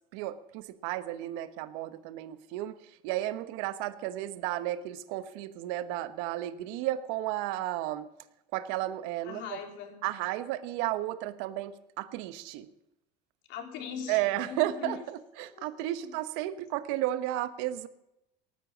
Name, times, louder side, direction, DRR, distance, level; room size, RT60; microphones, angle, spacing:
voice 1, 0.1-8.1 8.5-9.6 10.0-12.7 14.1-17.9, right 14 dB, 70° right, 13 dB, 1.1 m, -33 dB
voice 2, 9.2-10.0 13.5-15.0 15.5-15.6 16.0-16.1, left 7 dB, 65° left, 3 dB, 3.6 m, -41 dB
18.5 x 9.4 x 7.3 m, 0.86 s
supercardioid pair, 90°, 20 cm